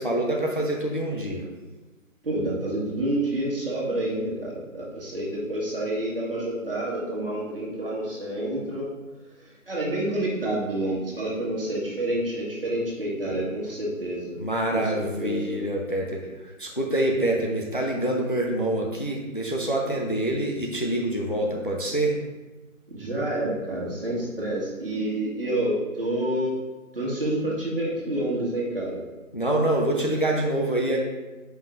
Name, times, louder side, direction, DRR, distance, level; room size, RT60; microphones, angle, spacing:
voice 1, 0.0-1.5 14.4-22.1 29.3-31.0, right 1 dB, 40° left, 0 dB, 0.5 m, -26 dB
voice 2, 2.2-8.9 9.7-14.4 14.7-15.6 22.9-26.6 26.9-29.0, right 1 dB, 40° right, -4 dB, 1.5 m, -28 dB
7.5 x 5.5 x 2.5 m, 1.2 s
figure-of-eight pair, 175°, 43 cm